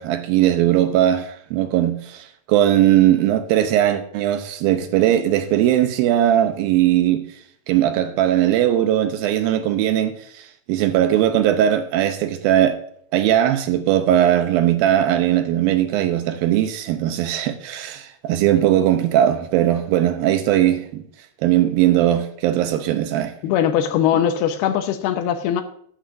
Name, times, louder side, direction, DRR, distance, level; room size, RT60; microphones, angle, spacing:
voice 1, 0.0-7.3 7.7-12.8 13.1-21.0 21.4-23.3, right 11 dB, 80° right, 2.4 m, -19 dB
voice 2, 23.4-25.6, left 9 dB, 90° left, 2.7 m, -20 dB
13.0 x 11.5 x 2.6 m
omnidirectional pair, 4.4 m